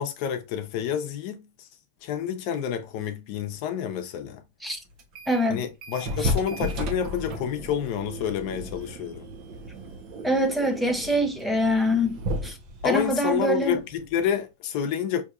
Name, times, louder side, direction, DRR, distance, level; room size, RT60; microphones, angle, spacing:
voice 1, 0.0-1.7 2.0-4.4 5.5-9.3 12.8-15.2, left 9 dB, 55° left, 0.7 m, -29 dB
sound 1, 5.0-5.5 5.8-14.3, equal, 50° right, 0.9 m, -34 dB
voice 2, 5.3-5.6 6.2-6.3 10.2-12.6 12.8-13.8, equal, 5° right, 0.7 m, -24 dB
4.5 x 2.7 x 2.4 m
hypercardioid pair, 120°, 0 cm